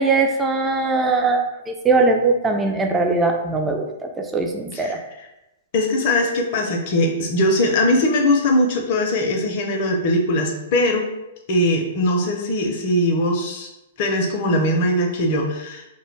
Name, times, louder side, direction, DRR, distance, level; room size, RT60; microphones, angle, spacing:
voice 1, 0.0-5.0, right 3 dB, 15° right, 3 dB, 0.3 m, -20 dB
voice 2, 4.7-5.3 5.7-11.1 11.5-13.7 14.0-15.9, left 1 dB, 50° left, 2 dB, 0.5 m, -20 dB
2.1 x 2.1 x 3.2 m, 0.93 s
hypercardioid pair, 120°, 0 cm